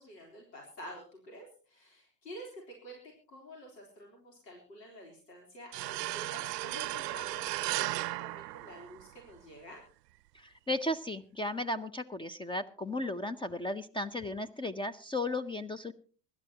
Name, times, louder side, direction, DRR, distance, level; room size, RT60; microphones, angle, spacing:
voice 1, 0.0-3.0 3.3-9.8, equal, 90° left, 0 dB, 3.8 m, -49 dB
sound 1, 5.7-9.3, right 18 dB, 80° right, 0.6 m, -35 dB
voice 2, 10.3-15.9, left 1 dB, 10° left, 15 dB, 0.6 m, -35 dB
24.5 x 12.0 x 2.9 m, 0.40 s
hypercardioid pair, 85°, 48 cm